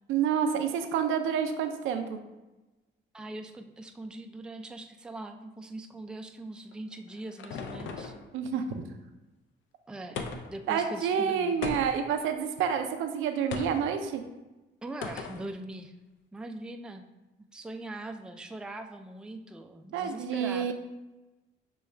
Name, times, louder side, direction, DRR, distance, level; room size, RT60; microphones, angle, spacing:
voice 1, 0.1-2.2 8.3-8.9 10.7-14.2 19.9-20.7, right 7 dB, 85° right, 6 dB, 0.5 m, -28 dB
voice 2, 3.1-8.1 9.9-10.2 10.5-11.6 14.8-15.9 16.3-17.1 17.5-20.7, right 2 dB, 5° right, 5 dB, 0.3 m, -41 dB
sound 1, 6.7-8.3 10.2-10.6 11.6-12.2 13.5-13.9 15.0-15.5, left 4 dB, 75° left, 0.5 m, -37 dB
6.2 x 2.3 x 3.2 m, 1.1 s
cardioid pair, 90°, 20 cm